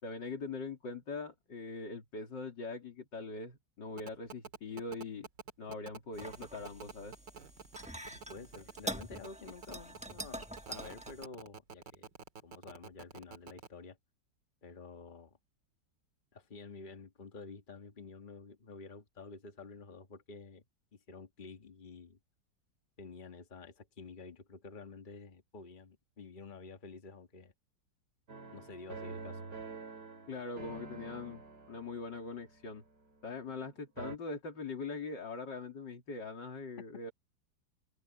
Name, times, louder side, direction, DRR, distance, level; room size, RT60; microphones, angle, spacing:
voice 1, 0.0-5.3 5.6-7.2 30.3-32.8 33.2-37.1, left 3 dB, 85° left, 3.7 m, -42 dB
sound 1, 4.0-13.7, right 6 dB, 85° right, 2.5 m, -48 dB
sound 2, 6.1-11.2, right 1 dB, 5° right, 1.0 m, -45 dB
voice 2, 8.3-12.1 12.4-14.0 14.6-15.4 16.3-20.6 20.9-22.2 23.0-27.5 28.5-29.4, left 4 dB, 30° left, 1.7 m, -50 dB
sound 3, 28.3-33.6 34.0-34.2, right 4 dB, 65° right, 3.6 m, -48 dB
omnidirectional pair, 1.9 m